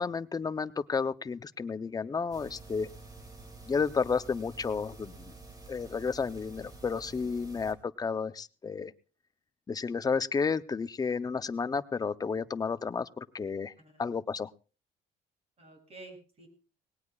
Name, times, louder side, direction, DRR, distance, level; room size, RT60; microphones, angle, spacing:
voice 1, 0.0-2.9 3.7-5.3 5.7-8.9 9.7-13.7 14.0-14.5, left 5 dB, 20° left, 14 dB, 0.6 m, -32 dB
sound 1, 2.3-7.7, right 3 dB, 20° right, 2.3 m, -49 dB
voice 2, 15.6-16.5, right 2 dB, 35° right, 3 dB, 6.8 m, -51 dB
19.5 x 18.5 x 2.4 m, 0.35 s
cardioid pair, 110°, 17 cm